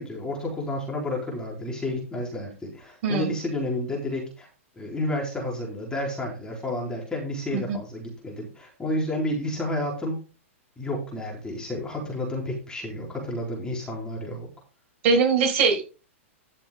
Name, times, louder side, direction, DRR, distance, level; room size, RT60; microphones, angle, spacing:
voice 1, 0.0-4.5 4.8-10.2 10.8-14.5, left 1 dB, 10° left, -2 dB, 4.1 m, -31 dB
voice 2, 15.0-15.8, right 5 dB, 50° right, 2 dB, 5.9 m, -21 dB
13.0 x 6.8 x 3.8 m, 0.34 s
hypercardioid pair, 130°, 7 cm